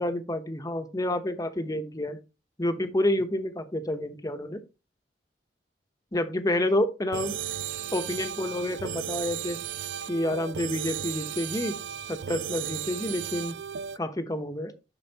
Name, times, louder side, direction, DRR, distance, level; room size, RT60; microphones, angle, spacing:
voice 1, 0.0-2.2 2.6-4.6 6.1-7.4 7.9-9.6 10.1-11.8 12.1-13.6 14.0-14.7, left 1 dB, 20° left, 8 dB, 0.9 m, -29 dB
sound 1, 7.1-14.0, right 9 dB, 85° right, 0.4 m, -35 dB
7.9 x 5.9 x 2.8 m, 0.29 s
head